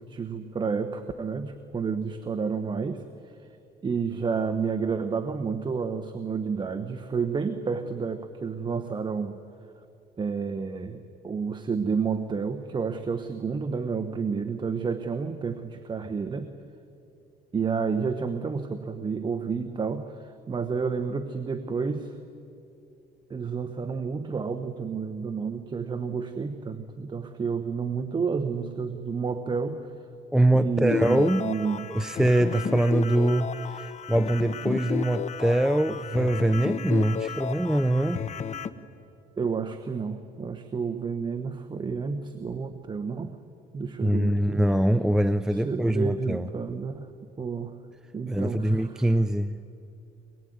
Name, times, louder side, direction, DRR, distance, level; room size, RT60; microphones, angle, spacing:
voice 1, 0.0-3.0 3.8-9.4 10.2-16.5 17.5-22.2 23.3-29.9 30.5-31.9 39.4-43.4 43.7-44.6 45.5-47.1 47.4-47.7 48.1-49.2, right 5 dB, 25° right, 8 dB, 1.2 m, -30 dB
voice 2, 30.3-31.4 31.9-38.2 44.0-46.5 48.3-49.6, right 1 dB, 5° right, 11 dB, 0.6 m, -23 dB
sound 1, 30.9-38.7, left 7 dB, 45° left, 1.1 m, -33 dB
24.0 x 21.5 x 9.5 m, 2.6 s
cardioid pair, 110°, 17 cm